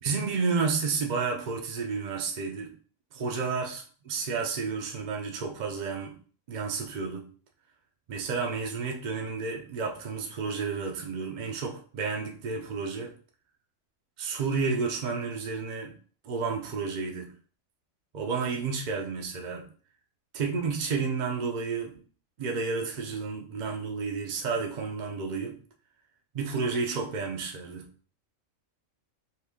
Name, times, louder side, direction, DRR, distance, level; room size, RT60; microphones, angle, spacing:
voice 1, 0.0-2.7 3.1-6.2 6.5-7.3 8.1-13.1 14.2-15.9 16.2-17.3 18.1-19.7 20.3-21.9 22.4-25.6 26.4-27.9, right 5 dB, 70° right, 0.4 m, -31 dB
2.8 x 2.8 x 3.4 m
omnidirectional pair, 1.4 m